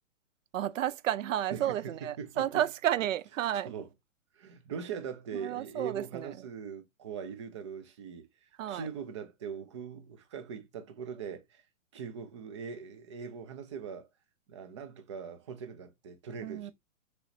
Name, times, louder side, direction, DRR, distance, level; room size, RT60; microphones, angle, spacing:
voice 1, 0.5-3.7 5.3-6.5 8.6-8.9 16.4-16.7, right 11 dB, 75° right, 0.5 m, -32 dB
voice 2, 1.5-2.4 3.7-3.9 4.3-11.6 11.9-14.1 14.5-16.7, right 6 dB, 25° right, 0.4 m, -41 dB
5.7 x 3.1 x 2.6 m
hypercardioid pair, 150°, 39 cm